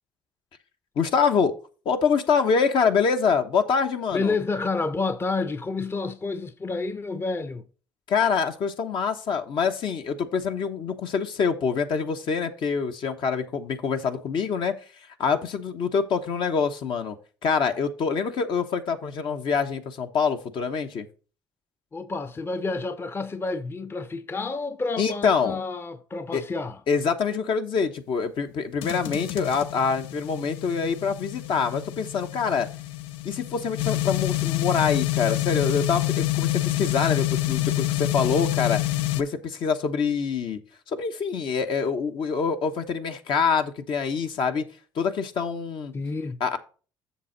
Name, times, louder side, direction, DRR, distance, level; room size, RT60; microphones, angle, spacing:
voice 1, 1.0-1.5 1.8-4.3 8.1-14.7 15.2-17.2 17.4-21.1 25.0-25.6 26.3-26.4 26.9-32.7 33.2-38.8 39.2-40.6 40.9-44.6 44.9-45.9 46.4-46.6, left 6 dB, 65° left, 1.1 m, -25 dB
voice 2, 4.1-7.7 21.9-26.8 45.9-46.4, left 3 dB, 25° left, 0.7 m, -29 dB
sound 1, 28.8-39.2, left 17 dB, 85° left, 0.4 m, -27 dB
7.3 x 6.7 x 4.0 m
supercardioid pair, 80°, 9 cm